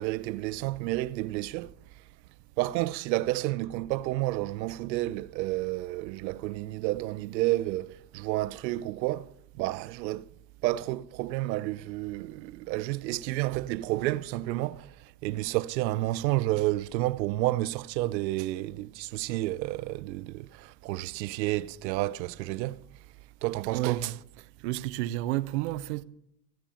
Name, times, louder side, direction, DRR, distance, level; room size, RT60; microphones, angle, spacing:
voice 1, 0.0-1.7 2.6-10.3 10.6-22.8 23.4-24.1, right 17 dB, 90° right, 0.8 m, -30 dB
voice 2, 23.7-24.1 24.6-26.0, right 16 dB, 45° right, 0.5 m, -30 dB
15.0 x 10.0 x 6.9 m
supercardioid pair, 180°, 50 cm